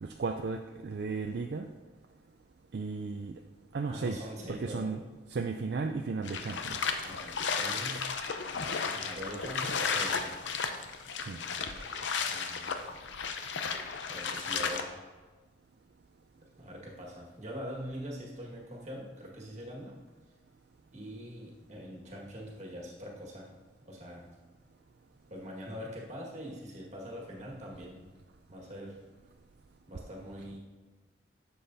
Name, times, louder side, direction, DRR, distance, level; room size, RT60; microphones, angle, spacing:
voice 1, 0.0-1.7 2.7-3.3 3.7-4.2 4.5-5.0 5.3-6.8 11.2-11.4, right 4 dB, 60° right, 4 dB, 0.4 m, -34 dB
voice 2, 3.9-5.1 7.0-8.1 8.9-10.3 11.7-11.9 12.2-12.8 14.1-15.0 16.5-19.9 20.9-23.5 23.9-24.2 25.3-28.0 28.5-29.0 29.9-30.6, equal, 40° right, -3 dB, 1.7 m, -43 dB
sound 1, 6.2-14.8, left 5 dB, 85° left, 0.6 m, -34 dB
11.0 x 7.0 x 2.7 m, 1.4 s
head